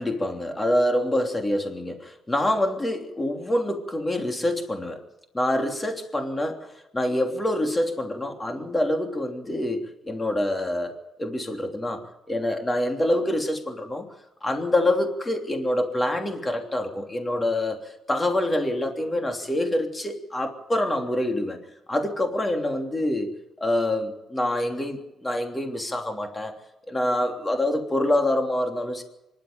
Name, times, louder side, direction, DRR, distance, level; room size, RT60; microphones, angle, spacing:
voice 1, 0.0-5.0 5.3-12.0 12.3-14.1 14.4-21.6 21.9-23.3 23.6-26.5 26.9-29.0, left 1 dB, 20° left, 4 dB, 3.1 m, -26 dB
25.0 x 11.5 x 9.3 m, 0.94 s
cardioid pair, 90°, 0 cm